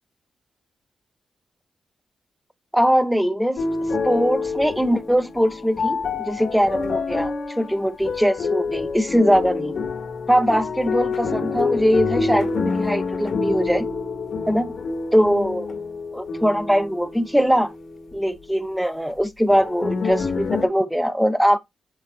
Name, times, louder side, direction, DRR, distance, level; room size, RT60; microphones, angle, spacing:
voice 1, 2.7-3.6 4.0-9.8 10.3-13.9 14.5-14.7 15.1-15.7 16.1-17.7 18.1-21.6, equal, ahead, 1.2 m, -21 dB
sound 1, 3.6-18.2 19.5-20.7, left 4 dB, 70° left, 1.6 m, -27 dB
7.6 x 3.9 x 3.9 m
cardioid pair, 55°, 0 cm